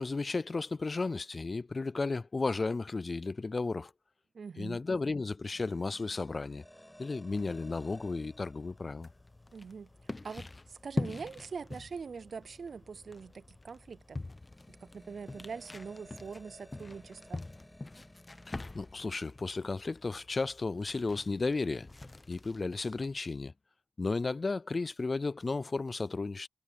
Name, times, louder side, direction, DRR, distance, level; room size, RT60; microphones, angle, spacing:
voice 1, 0.0-3.9 4.6-6.6 7.0-9.1 18.5-21.9 22.3-23.5 24.0-26.5, left 3 dB, 50° left, 0.3 m, -34 dB
voice 2, 4.3-4.8 9.5-14.2 14.7-17.4, right 5 dB, 75° right, 0.4 m, -43 dB
sound 1, 5.5-21.7, equal, 5° left, 5.7 m, -59 dB
sound 2, 7.3-23.2, left 2 dB, 35° left, 1.1 m, -45 dB
cardioid pair, 50°, 0 cm